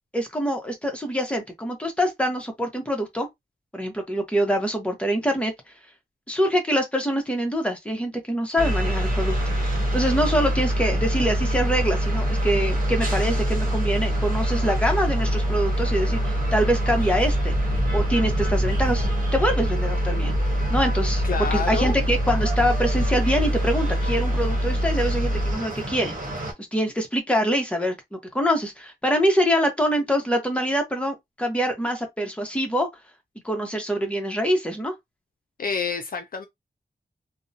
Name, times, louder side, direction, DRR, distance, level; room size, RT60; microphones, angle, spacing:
voice 1, 0.1-3.3 3.7-5.5 6.3-17.5 17.9-20.3 20.7-21.2 21.5-26.1 26.7-32.9 33.4-34.9, equal, 5° left, 0.8 m, -25 dB
sound 1, 8.6-25.6, equal, 40° left, 1.1 m, -24 dB
sound 2, 8.6-26.5, right 1 dB, 55° right, 1.0 m, -32 dB
voice 2, 21.2-22.0 35.6-36.5, left 5 dB, 60° left, 0.4 m, -28 dB
2.6 x 2.1 x 2.7 m
wide cardioid pair, 95°, 17 cm